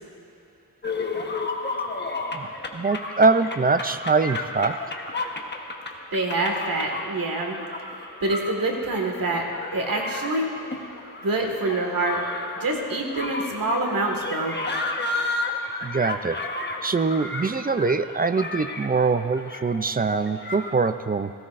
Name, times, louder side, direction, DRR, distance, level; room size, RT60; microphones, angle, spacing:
sound 1, 0.8-20.7, left 2 dB, 30° left, 1.1 m, -33 dB
voice 1, 2.3-4.8 15.8-16.4 16.8-21.3, right 4 dB, 25° right, 12 dB, 0.4 m, -23 dB
voice 2, 6.1-7.6 8.2-9.4 9.7-10.5 11.2-12.2 12.6-14.6, right 2 dB, 65° right, 1 dB, 1.8 m, -26 dB
17.5 x 15.5 x 2.5 m, 2.7 s
wide cardioid pair, 90°, 36 cm